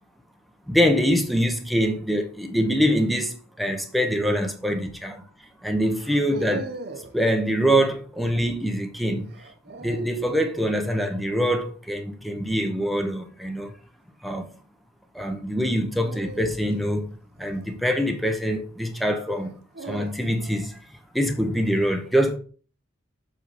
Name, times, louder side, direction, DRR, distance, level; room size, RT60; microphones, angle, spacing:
voice 1, 0.7-5.2 5.6-6.7 7.1-9.3 9.8-13.7 14.2-14.5 15.1-17.1 17.4-19.5 19.9-20.8 21.1-22.4, equal, ahead, 0.8 m, -24 dB
sound 1, 4.1-4.4 5.9-7.2 9.3-10.3 12.7-13.1 15.9-18.3 19.3-20.6, right 3 dB, 55° right, 1.0 m, -40 dB
7.4 x 4.9 x 4.1 m
head